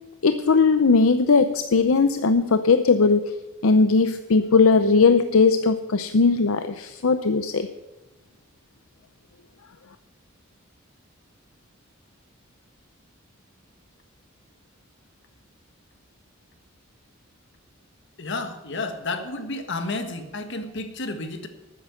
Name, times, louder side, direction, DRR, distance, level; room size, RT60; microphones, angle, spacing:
voice 1, 0.2-3.2 3.6-7.7, left 4 dB, 75° left, 10 dB, 0.6 m, -19 dB
voice 2, 18.2-21.5, left 2 dB, 55° left, 7 dB, 1.6 m, -31 dB
12.5 x 9.5 x 7.8 m, 1.0 s
head